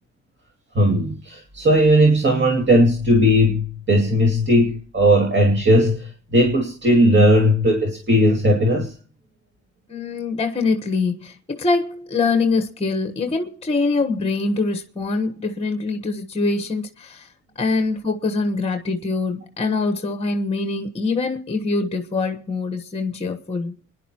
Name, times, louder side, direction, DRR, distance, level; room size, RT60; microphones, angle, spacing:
voice 1, 0.7-8.9, equal, 40° right, 2.4 m, -17 dB
voice 2, 9.9-17.3 17.6-23.7, left 3 dB, 20° left, 1.3 m, -24 dB
28.5 x 10.5 x 3.0 m
cardioid pair, 90°, 30 cm